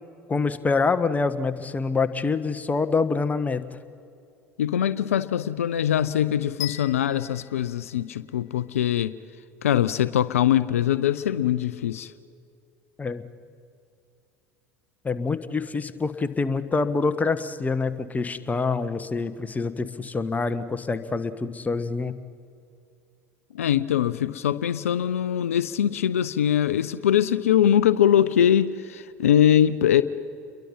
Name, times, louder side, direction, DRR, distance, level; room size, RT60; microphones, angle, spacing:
voice 1, 0.3-3.6 13.0-13.2 15.0-22.1, left 4 dB, 20° left, 11 dB, 1.3 m, -26 dB
voice 2, 4.6-9.1 9.6-12.1 23.5-30.0, left 10 dB, 80° left, 16 dB, 0.5 m, -22 dB
sound 1, 6.6-8.7, left 16 dB, 50° left, 1.9 m, -38 dB
29.5 x 22.5 x 5.6 m, 2.5 s
figure-of-eight pair, 65°, 8 cm